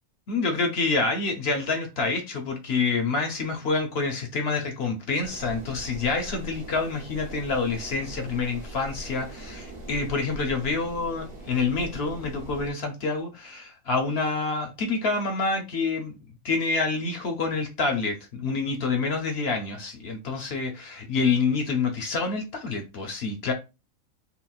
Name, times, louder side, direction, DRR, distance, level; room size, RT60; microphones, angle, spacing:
voice 1, 0.3-16.2 16.4-23.5, left 4 dB, 60° left, 0.7 m, -27 dB
sound 1, 5.2-12.7, right 1 dB, 45° right, 1.1 m, -41 dB
3.8 x 2.0 x 2.3 m
omnidirectional pair, 1.4 m